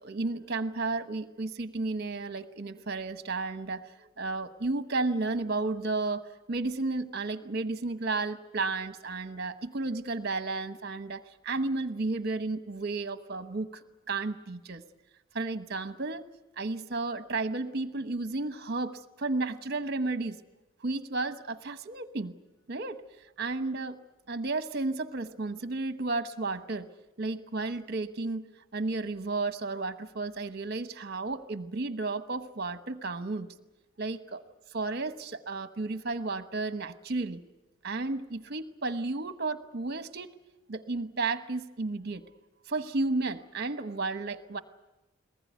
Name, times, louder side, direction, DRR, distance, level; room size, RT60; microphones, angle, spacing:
voice 1, 0.0-14.8 15.3-16.3 16.6-20.4 20.8-22.3 22.7-23.0 23.4-24.0 24.3-26.9 27.2-33.5 34.0-34.4 34.7-37.4 37.8-40.3 40.7-42.2 42.7-44.6, right 3 dB, 50° right, 10 dB, 1.1 m, -33 dB
22.5 x 20.0 x 9.4 m, 1.0 s
head